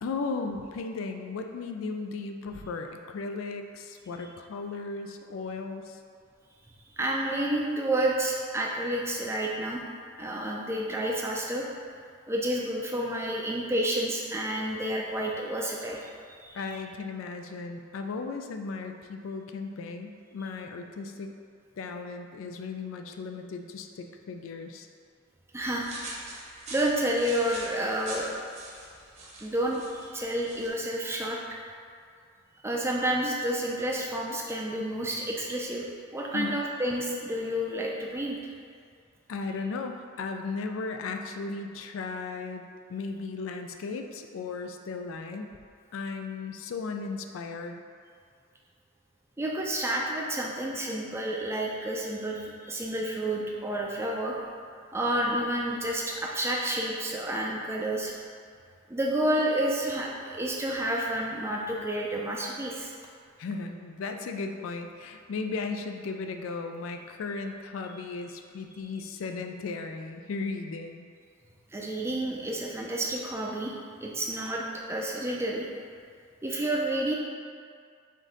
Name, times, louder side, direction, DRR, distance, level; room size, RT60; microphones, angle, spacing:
voice 1, 0.0-6.0 16.5-21.3 21.8-24.9 36.3-36.6 39.3-45.5 45.9-47.8 63.4-71.1, left 4 dB, 70° left, 5 dB, 0.3 m, -36 dB
voice 2, 7.0-9.8 10.2-11.7 12.3-16.6 25.5-25.9 26.7-28.3 29.4-31.4 32.6-35.9 36.1-38.5 49.4-54.3 54.9-58.1 58.9-62.9 71.7-73.7 74.0-75.7 76.4-77.2, right 1 dB, 10° right, -2 dB, 0.4 m, -30 dB
sound 1, 25.6-30.7, right 2 dB, 35° right, 0.8 m, -44 dB
5.2 x 2.6 x 3.8 m, 2.2 s
head